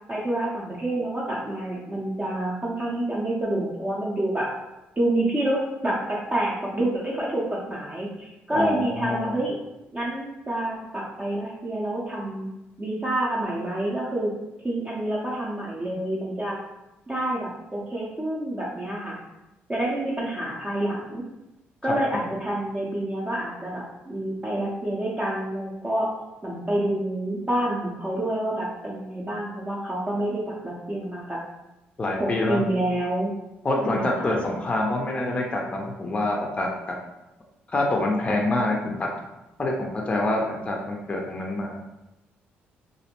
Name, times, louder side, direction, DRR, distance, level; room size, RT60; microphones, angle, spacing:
voice 1, 0.1-4.5 5.0-9.6 9.9-12.5 12.8-14.3 14.6-16.6 17.1-19.2 19.7-21.2 21.8-26.1 26.4-31.4 32.2-33.3 33.8-34.3, right 1 dB, 20° right, -5 dB, 0.5 m, -28 dB
voice 2, 8.5-9.3 21.8-22.0 32.0-32.6 33.6-36.7 37.7-39.1 39.6-41.8, left 2 dB, 25° left, -1 dB, 0.5 m, -26 dB
2.5 x 2.0 x 2.8 m, 0.94 s
cardioid pair, 80°, 4 cm